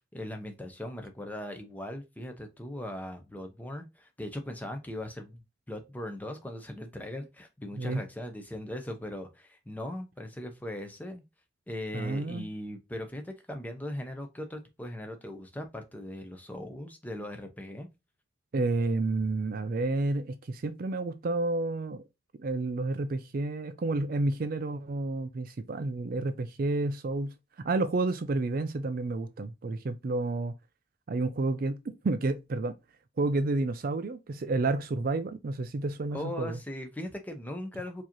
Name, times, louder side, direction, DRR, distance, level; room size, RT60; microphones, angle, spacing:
voice 1, 0.1-5.4 5.7-11.2 11.7-17.9 36.1-38.0, left 1 dB, 10° left, 0.7 m, -39 dB
voice 2, 11.9-12.5 18.5-22.0 22.4-30.5 31.1-32.7 33.2-36.6, right 2 dB, 45° right, 0.4 m, -30 dB
4.6 x 2.9 x 2.9 m
head